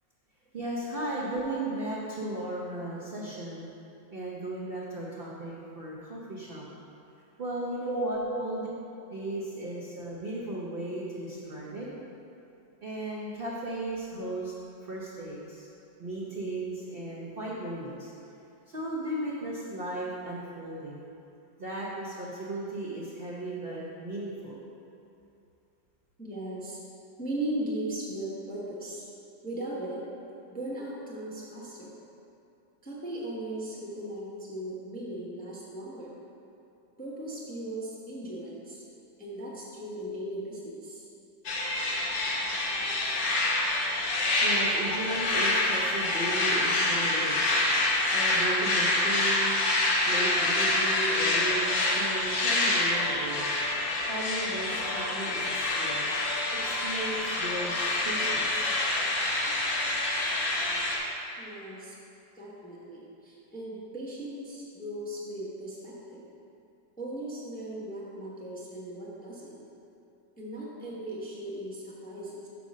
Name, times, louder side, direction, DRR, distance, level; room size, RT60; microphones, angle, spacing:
voice 1, 0.5-3.7 4.1-6.6 7.4-8.7 9.1-11.9 12.8-14.5 14.8-15.7 16.0-18.1 18.7-21.0 21.6-24.6 44.4-47.7 48.1-53.5 54.1-56.1 56.5-58.7, right 1 dB, 65° right, -5 dB, 0.5 m, -36 dB
voice 2, 1.1-1.5 7.9-8.6 9.6-9.7 26.2-26.8 27.2-29.1 29.4-30.0 30.5-31.9 32.8-36.1 37.0-38.8 39.2-41.0 61.4-61.9 62.4-66.2 67.0-69.6 70.4-72.5, right 1 dB, 10° left, -6 dB, 0.5 m, -37 dB
sound 1, 41.5-61.0, left 2 dB, 60° left, 1.2 m, -27 dB
5.1 x 4.7 x 6.2 m, 2.7 s
omnidirectional pair, 2.0 m